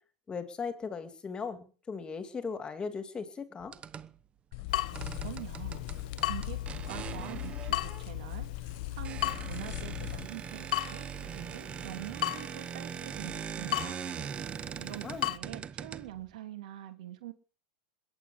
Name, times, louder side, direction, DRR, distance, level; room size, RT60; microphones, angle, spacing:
voice 1, 0.3-3.8 15.0-15.2, left 5 dB, 20° left, 9 dB, 2.6 m, -38 dB
sound 1, 3.6-4.1 5.0-8.1 8.7-8.8 9.0-16.4, right 8 dB, 25° right, 0.9 m, -41 dB
sound 2, 4.5-10.3, left 15 dB, 55° left, 1.4 m, -39 dB
Water tap faucet / Drip, 4.7-15.4, left 14 dB, 75° left, 1.1 m, -38 dB
voice 2, 4.9-6.6 6.9-14.0 14.8-17.3, right 13 dB, 70° right, 8 dB, 3.0 m, -45 dB
21.5 x 8.8 x 6.8 m, 0.41 s
hypercardioid pair, 110°, 4 cm